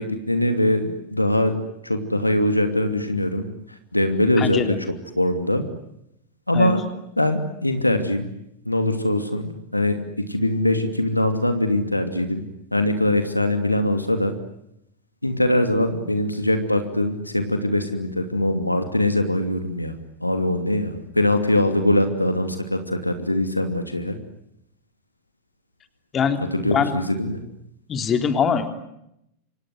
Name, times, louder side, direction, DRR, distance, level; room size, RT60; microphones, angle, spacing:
voice 1, 0.0-1.5 1.8-3.4 3.9-4.8 5.2-5.6 6.5-6.9 7.2-8.3 8.6-12.4 12.7-14.3 15.2-19.9 20.2-24.1 26.5-27.4, left 1 dB, 85° left, 7 dB, 2.7 m, -22 dB
voice 2, 4.4-4.8 6.5-6.7 26.1-27.0 27.9-28.7, left 6 dB, 25° left, 8 dB, 3.5 m, -23 dB
29.0 x 26.0 x 7.9 m, 0.80 s
figure-of-eight pair, 90°, 0 cm